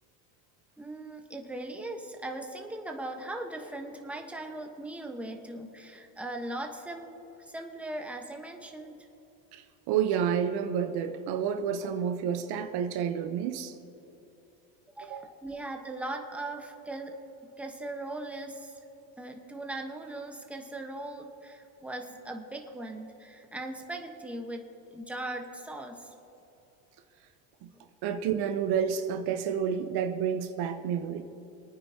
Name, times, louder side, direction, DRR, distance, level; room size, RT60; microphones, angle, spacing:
voice 1, 0.8-7.1 7.4-9.0 15.0-17.2 17.6-18.8 19.2-26.1 27.7-27.8, right 2 dB, 5° right, 2 dB, 1.2 m, -39 dB
voice 2, 9.5-13.8 15.0-15.3 27.6-27.7 28.0-31.2, right 8 dB, 60° right, 7 dB, 1.0 m, -30 dB
26.5 x 9.5 x 2.9 m, 2.9 s
supercardioid pair, 110°, 44 cm